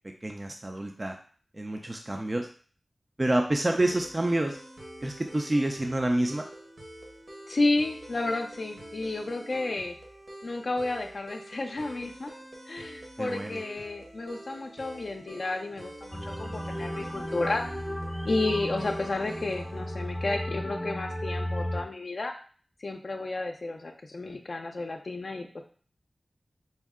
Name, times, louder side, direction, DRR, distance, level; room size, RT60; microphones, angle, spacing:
voice 1, 0.2-1.2 1.5-2.5 3.2-4.6 5.0-6.5 13.2-13.6, right 1 dB, 30° right, 3 dB, 0.4 m, -28 dB
sound 1, 3.8-19.8, right 1 dB, 55° right, 1.3 m, -46 dB
voice 2, 7.5-9.9 10.4-12.3 12.7-17.6 18.2-22.3 22.8-25.6, left 2 dB, 60° left, 3 dB, 0.5 m, -31 dB
sound 2, 16.1-21.8, equal, ahead, 0.7 m, -34 dB
5.4 x 2.1 x 3.6 m, 0.43 s
cardioid pair, 50°, 0 cm